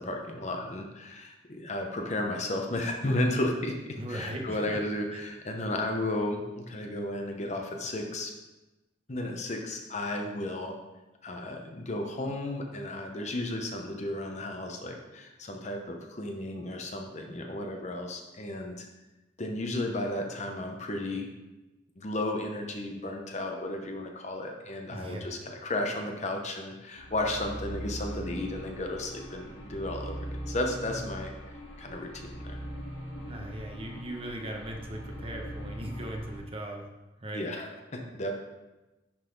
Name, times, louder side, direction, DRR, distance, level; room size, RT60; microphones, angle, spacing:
voice 1, 0.0-8.3 9.1-10.7 11.2-18.9 19.4-21.3 22.0-30.1 30.5-31.3 31.8-32.6 37.3-38.3, left 1 dB, 40° left, 3 dB, 0.8 m, -33 dB
voice 2, 3.9-4.8 5.1-5.2 24.9-25.4 33.3-36.9 37.2-37.5, right 1 dB, 30° right, 2 dB, 0.9 m, -38 dB
sound 1, 27.0-36.4, equal, 75° left, 2.2 m, -40 dB
10.5 x 4.1 x 3.9 m, 1.1 s
head